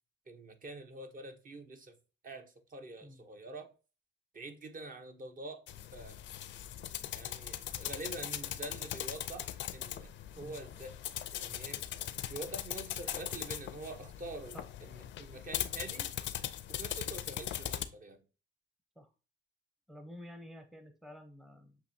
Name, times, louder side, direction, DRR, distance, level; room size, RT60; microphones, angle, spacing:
voice 1, 0.3-2.0 2.2-3.7 4.3-5.6 5.9-6.2 7.1-10.1 10.4-11.0 11.3-11.8 12.3-16.1 16.7-18.2, right 2 dB, 45° right, 0.9 m, -46 dB
sound 1, 5.7-17.8, left 11 dB, 65° left, 0.5 m, -40 dB
voice 2, 19.9-21.8, left 1 dB, ahead, 0.6 m, -50 dB
6.8 x 2.7 x 2.7 m
cardioid pair, 90°, 20 cm